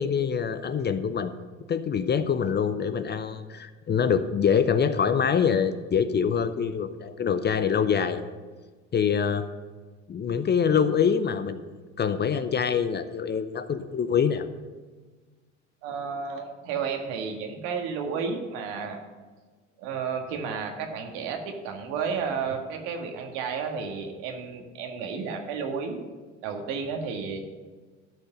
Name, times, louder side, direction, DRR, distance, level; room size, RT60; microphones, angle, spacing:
voice 1, 0.0-1.3 1.7-8.2 8.9-9.5 10.1-14.5, left 7 dB, 30° left, 11 dB, 0.7 m, -25 dB
voice 2, 15.8-19.0 19.8-26.0 26.4-27.4, right 5 dB, 65° right, 4 dB, 1.8 m, -32 dB
12.5 x 5.4 x 6.6 m, 1.4 s
hypercardioid pair, 70°, 37 cm